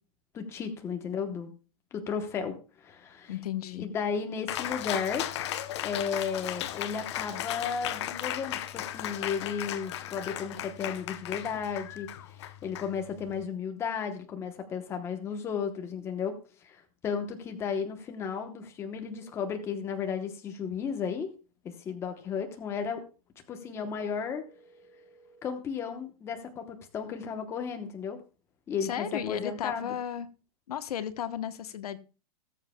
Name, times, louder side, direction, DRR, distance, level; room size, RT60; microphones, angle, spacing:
voice 1, 0.3-1.5 1.9-3.3 3.8-5.3 5.8-12.4 12.6-16.4 16.6-21.3 21.6-23.0 23.5-24.5 25.4-28.2 28.7-29.9, left 6 dB, 15° left, 5 dB, 0.9 m, -34 dB
voice 2, 3.3-3.9 28.8-30.3 30.7-32.0, left 10 dB, 70° left, 12 dB, 1.0 m, -34 dB
Cheering, 4.5-13.4, left 12 dB, 45° left, 0.8 m, -36 dB
sound 1, 19.1-19.6 23.6-25.4, right 2 dB, 85° left, 3.1 m, -58 dB
19.0 x 7.4 x 2.2 m, 0.34 s
supercardioid pair, 165°, 20 cm